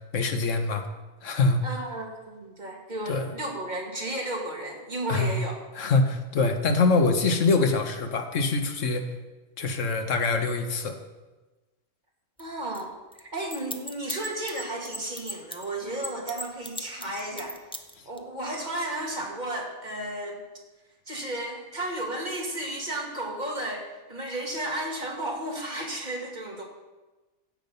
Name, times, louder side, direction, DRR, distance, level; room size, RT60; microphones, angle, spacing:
voice 1, 0.1-0.9 1.2-1.6 3.1-3.3 5.1-5.4 5.8-9.1 9.6-11.0, left 3 dB, 75° left, 6 dB, 1.5 m, -24 dB
voice 2, 1.6-5.6 12.4-17.6 18.1-20.4 21.1-26.6, right 1 dB, 35° right, -1 dB, 2.3 m, -33 dB
sound 1, 12.4-12.5 12.7-12.8 13.1-15.6 16.0-18.2, left 1 dB, 5° left, 0.6 m, -36 dB
15.5 x 7.5 x 5.4 m, 1.2 s
omnidirectional pair, 1.3 m